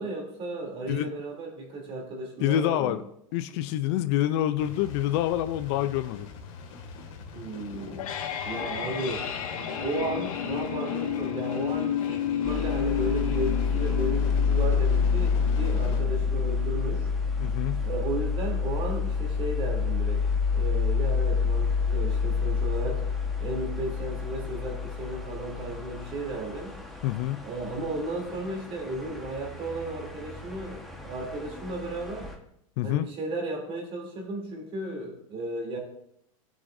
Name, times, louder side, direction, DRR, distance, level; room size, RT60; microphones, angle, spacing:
voice 1, 0.0-3.0 7.3-8.0 8.4-9.2 9.8-17.1 17.8-20.3 20.5-23.0 23.4-26.7 27.4-32.3 32.8-35.8, right 2 dB, 30° right, 0 dB, 3.1 m, -34 dB
voice 2, 2.4-3.0 3.3-6.3 17.4-17.8 27.0-27.4 32.8-33.1, left 13 dB, 50° left, 12 dB, 0.5 m, -27 dB
sound 1, 4.6-16.0, left 5 dB, 65° left, 2.1 m, -44 dB
sound 2, 7.7-18.7, left 9 dB, 90° left, 1.7 m, -33 dB
sound 3, 12.4-32.3, left 5 dB, ahead, 1.3 m, -28 dB
14.5 x 8.3 x 2.7 m, 0.74 s
supercardioid pair, 140°, 18 cm